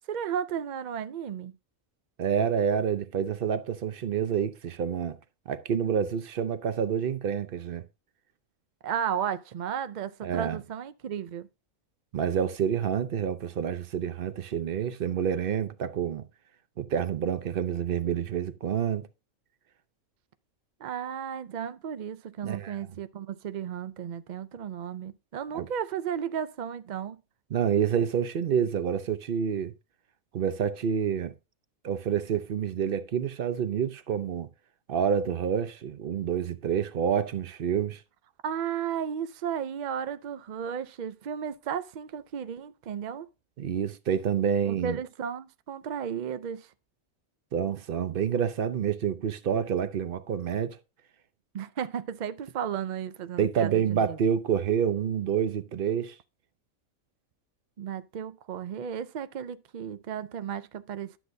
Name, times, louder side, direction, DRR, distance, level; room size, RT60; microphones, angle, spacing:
voice 1, 0.1-1.5 8.8-11.5 20.8-27.2 38.4-43.3 44.7-46.7 51.5-54.2 57.8-61.2, right 8 dB, 90° right, 0.4 m, -34 dB
voice 2, 2.2-5.2 5.5-7.8 10.2-10.6 12.1-16.3 16.8-19.1 22.4-22.8 25.5-25.7 27.5-29.7 30.3-31.3 31.8-34.5 34.9-38.0 43.6-45.0 47.5-50.8 53.4-56.2, right 8 dB, 55° right, 0.7 m, -28 dB
11.5 x 7.8 x 2.7 m
omnidirectional pair, 1.4 m